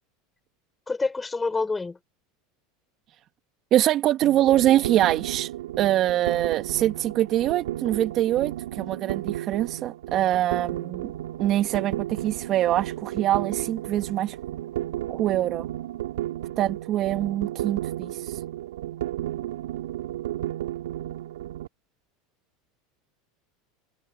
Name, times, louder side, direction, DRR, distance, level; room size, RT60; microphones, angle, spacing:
voice 1, 0.9-2.0, left 3 dB, 15° left, 7.6 m, -27 dB
voice 2, 3.7-5.5 5.8-11.1 11.4-14.4 15.1-15.7 16.6-18.1, right 13 dB, 45° right, 2.5 m, -24 dB
sound 1, 4.2-21.7, right 13 dB, 75° right, 3.3 m, -33 dB
hypercardioid pair, 85°, 0 cm